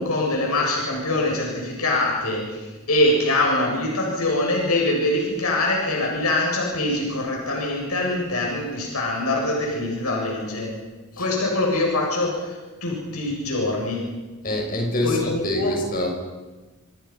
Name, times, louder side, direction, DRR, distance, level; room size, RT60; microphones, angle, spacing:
voice 1, 0.0-10.7 11.2-14.0 15.0-15.8, left 2 dB, 80° left, -1 dB, 7.8 m, -24 dB
voice 2, 14.4-16.1, left 1 dB, 40° left, 1 dB, 6.6 m, -25 dB
27.0 x 26.5 x 5.9 m, 1.2 s
head